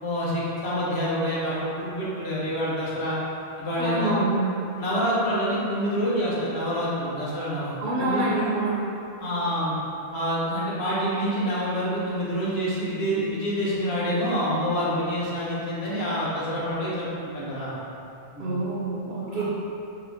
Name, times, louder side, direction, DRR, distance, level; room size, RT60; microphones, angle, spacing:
voice 1, 0.0-3.2 3.6-4.2 4.8-8.3 9.2-9.7 10.1-17.7 18.3-18.6 19.3-19.4, equal, 75° left, -8 dB, 1.3 m, -27 dB
voice 2, 3.8-4.3 7.8-8.8 18.4-19.4, right 2 dB, 60° right, -7 dB, 1.0 m, -26 dB
4.5 x 2.9 x 3.4 m, 2.7 s
omnidirectional pair, 1.1 m